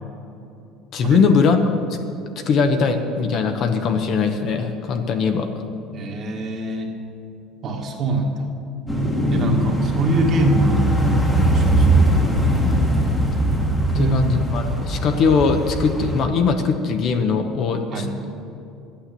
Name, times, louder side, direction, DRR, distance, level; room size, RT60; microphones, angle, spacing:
voice 1, 0.9-1.6 1.9-2.0 2.5-5.5 13.9-18.1, left 5 dB, 45° left, 6 dB, 1.0 m, -20 dB
voice 2, 5.9-6.9 7.6-8.5 9.3-12.1 13.9-14.2 17.9-18.2, right 2 dB, 40° right, 1 dB, 1.8 m, -23 dB
sound 1, 8.9-16.2, right 1 dB, 10° left, 1.4 m, -20 dB
11.5 x 8.8 x 7.5 m, 2.8 s
cardioid pair, 150°, 0 cm